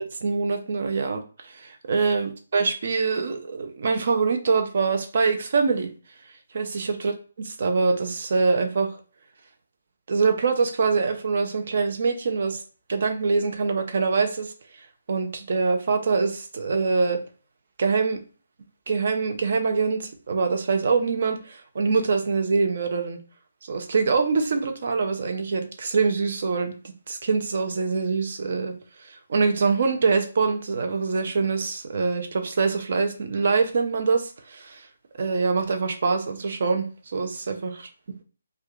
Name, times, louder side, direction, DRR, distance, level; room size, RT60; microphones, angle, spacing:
voice 1, 0.2-5.9 6.5-7.1 7.6-9.0 10.1-12.6 12.9-14.5 15.1-17.2 17.8-18.2 18.9-23.2 23.6-26.7 27.1-28.7 29.0-34.9 35.1-36.9 37.1-37.7, right 4 dB, 50° right, 5 dB, 0.5 m, -24 dB
2.6 x 2.3 x 3.5 m, 0.37 s
figure-of-eight pair, 145°, 0 cm